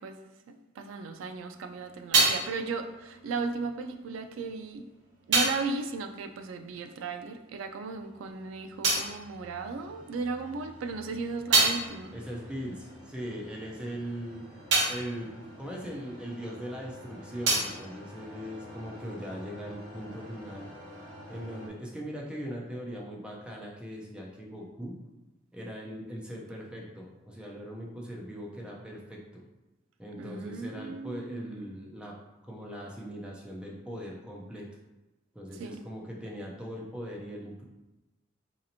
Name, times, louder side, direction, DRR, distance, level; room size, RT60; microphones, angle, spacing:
voice 1, 0.0-4.9 5.3-12.1 30.2-31.7 35.5-35.8, right 4 dB, 80° right, 7 dB, 0.3 m, -36 dB
sound 1, 1.3-7.3 7.6-10.3 10.7-16.7 17.0-19.0, right 3 dB, 65° right, 1.1 m, -31 dB
sound 2, 7.6-21.7, equal, 25° right, 1.4 m, -49 dB
voice 2, 12.1-14.4 14.9-15.3 15.6-20.7 21.3-25.0 25.5-29.4 30.0-32.1 32.4-34.7 35.3-37.6, equal, 5° right, -2 dB, 0.4 m, -40 dB
4.0 x 2.9 x 2.6 m, 1.0 s
head